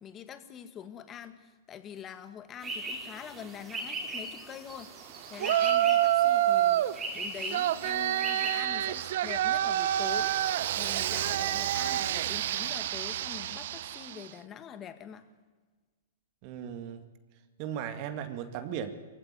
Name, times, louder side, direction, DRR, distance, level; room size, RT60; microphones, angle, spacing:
voice 1, 0.0-4.9 5.3-6.9 7.1-10.3 10.8-15.2, left 8 dB, 25° left, 10 dB, 2.0 m, -44 dB
sound 1, 2.6-8.6, right 2 dB, 20° right, 4.1 m, -39 dB
Yell, 5.4-7.0 7.5-14.2, right 12 dB, 60° right, 0.9 m, -28 dB
voice 2, 16.4-17.0 17.6-18.9, right 9 dB, 45° right, 9 dB, 2.0 m, -36 dB
23.5 x 16.0 x 9.7 m, 1.3 s
hypercardioid pair, 115°, 0 cm